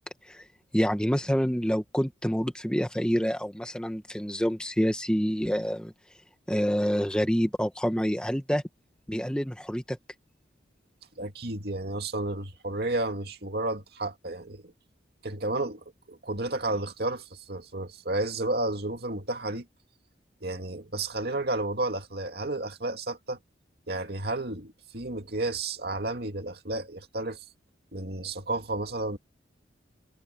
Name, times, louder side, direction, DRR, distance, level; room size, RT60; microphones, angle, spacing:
voice 1, 0.7-5.9 6.5-8.6 9.1-10.0, equal, 5° left, 1.6 m, -27 dB
voice 2, 11.2-14.7 15.2-19.7 20.4-23.4 23.9-27.4 27.9-29.2, right 2 dB, 55° right, 2.4 m, -32 dB
head